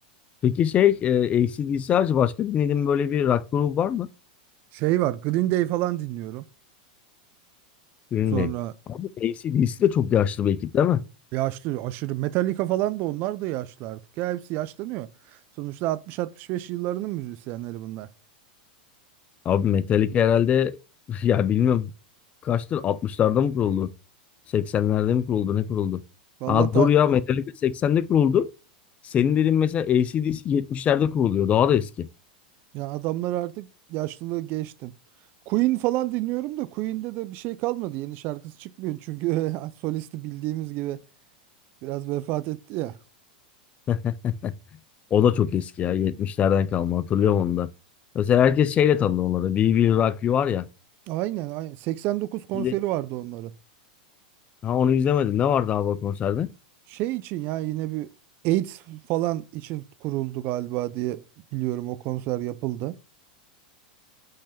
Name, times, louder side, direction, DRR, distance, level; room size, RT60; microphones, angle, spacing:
voice 1, 0.4-4.1 8.1-8.5 8.9-11.0 19.5-20.8 21.1-21.9 22.4-23.9 24.5-26.0 26.5-28.5 29.0-32.1 43.9-44.5 45.1-47.7 48.1-50.6 52.5-52.7 54.6-56.5, left 9 dB, 30° left, 0.4 m, -22 dB
voice 2, 4.7-6.4 8.3-8.7 11.3-15.1 15.6-18.1 26.4-26.9 32.7-34.9 35.5-41.0 41.8-43.0 51.1-53.5 56.9-58.1 58.4-61.2 61.5-63.0, right 16 dB, 45° right, 0.4 m, -28 dB
5.5 x 3.4 x 5.1 m
hypercardioid pair, 110°, 5 cm